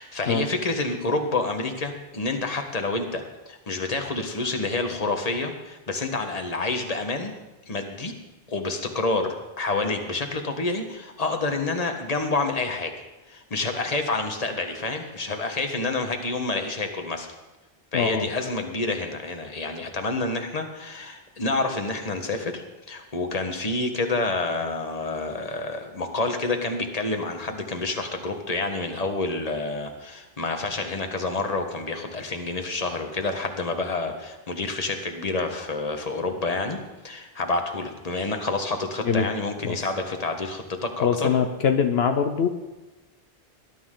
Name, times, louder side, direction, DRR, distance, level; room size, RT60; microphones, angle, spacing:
voice 1, 0.0-7.3 7.6-8.1 8.5-12.9 13.3-17.3 17.9-36.8 37.0-41.3, left 3 dB, 40° left, 5 dB, 1.5 m, -28 dB
voice 2, 17.9-18.3 39.0-39.3 39.6-39.8 41.0-42.5, left 6 dB, 75° left, 7 dB, 1.1 m, -22 dB
20.0 x 12.0 x 3.8 m, 1.1 s
omnidirectional pair, 1.0 m